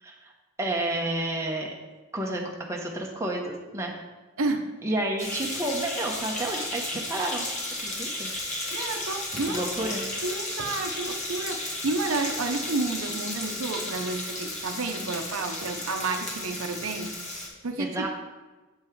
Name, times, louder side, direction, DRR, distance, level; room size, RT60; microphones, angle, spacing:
voice 1, 0.0-0.3 0.6-1.7 2.1-3.9 4.8-7.5 7.8-8.3 9.4-10.0 17.8-18.1, right 1 dB, 15° right, -1 dB, 0.9 m, -30 dB
sound 1, 5.2-17.5, left 2 dB, 35° left, 1.6 m, -34 dB
voice 2, 8.7-9.9 10.2-17.3 17.6-18.1, right 3 dB, 75° right, 6 dB, 0.7 m, -31 dB
7.8 x 5.5 x 4.6 m, 1.2 s
head